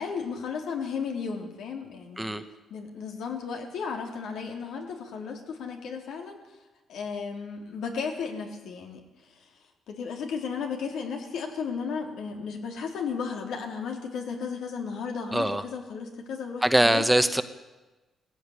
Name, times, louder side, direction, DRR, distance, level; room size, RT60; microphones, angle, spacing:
voice 1, 0.0-2.3 2.7-6.4 6.9-9.0 9.9-17.0, left 5 dB, 85° left, 3 dB, 3.6 m, -34 dB
voice 2, 15.3-15.6 16.6-17.4, right 1 dB, 5° right, 10 dB, 1.1 m, -22 dB
18.5 x 15.5 x 9.8 m, 1.1 s
cardioid pair, 115°, 0 cm